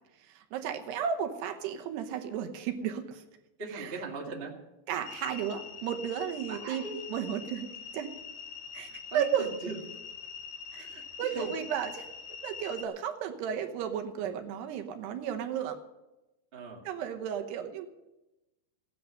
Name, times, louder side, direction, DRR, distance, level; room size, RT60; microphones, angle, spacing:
voice 1, 0.3-3.2 3.7-4.0 4.9-7.7 7.9-8.1 8.7-9.5 10.7-10.9 11.2-12.1 12.4-15.8 16.9-17.9, right 8 dB, 75° right, 6 dB, 2.9 m, -34 dB
voice 2, 3.6-4.5 6.5-7.0 8.8-9.8 10.7-11.5 16.5-16.8, right 3 dB, 40° right, 0 dB, 0.8 m, -40 dB
sound 1, 5.0-12.8, left 6 dB, 60° left, 1.5 m, -44 dB
16.5 x 10.5 x 6.4 m, 0.98 s
omnidirectional pair, 5.2 m